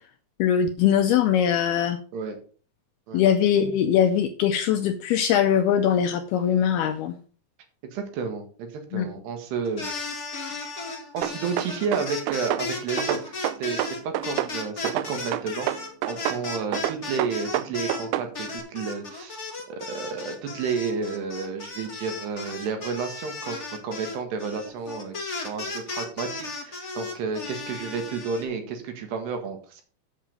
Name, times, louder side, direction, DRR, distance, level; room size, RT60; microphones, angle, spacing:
voice 1, 0.4-2.0 3.1-7.1 8.9-9.2, left 9 dB, 80° left, 6 dB, 2.3 m, -21 dB
voice 2, 7.9-9.9 10.5-10.8 11.1-15.7 16.0-19.4 19.7-29.8, right 5 dB, 70° right, 5 dB, 3.6 m, -31 dB
sound 1, 9.6-18.1 18.3-28.4, left 3 dB, 40° left, 0.9 m, -35 dB
sound 2, 11.2-12.7 13.0-14.5 14.8-16.4 16.7-18.3, right 14 dB, 90° right, 2.9 m, -28 dB
8.4 x 7.3 x 5.3 m, 0.40 s
omnidirectional pair, 5.1 m